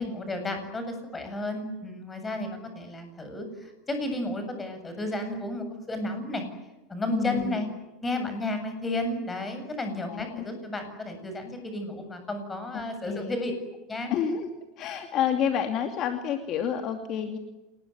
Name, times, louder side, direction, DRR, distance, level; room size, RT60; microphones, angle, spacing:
voice 1, 0.0-6.4 6.9-7.7 8.0-13.5 13.9-14.1, left 1 dB, 15° left, 7 dB, 7.7 m, -32 dB
voice 2, 7.1-7.6 10.1-10.4 12.7-13.4 14.1-14.5 14.8-17.4, left 8 dB, 40° left, 6 dB, 2.7 m, -29 dB
28.5 x 21.0 x 9.5 m, 1.1 s
supercardioid pair, 140°, 0 cm